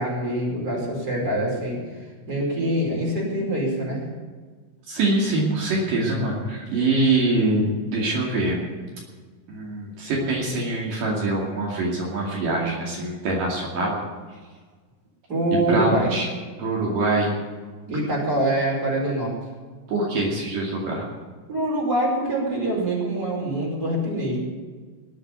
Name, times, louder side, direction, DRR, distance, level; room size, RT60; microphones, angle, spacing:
voice 1, 0.0-1.8 2.3-4.0 15.3-16.1 17.9-19.3 21.5-24.4, right 1 dB, 25° right, -3 dB, 5.5 m, -24 dB
voice 2, 4.9-8.6 9.5-14.0 15.7-16.3 16.6-17.3 19.9-21.1, right 2 dB, 75° right, -3 dB, 4.0 m, -24 dB
19.0 x 7.9 x 8.2 m, 1.4 s
omnidirectional pair, 3.9 m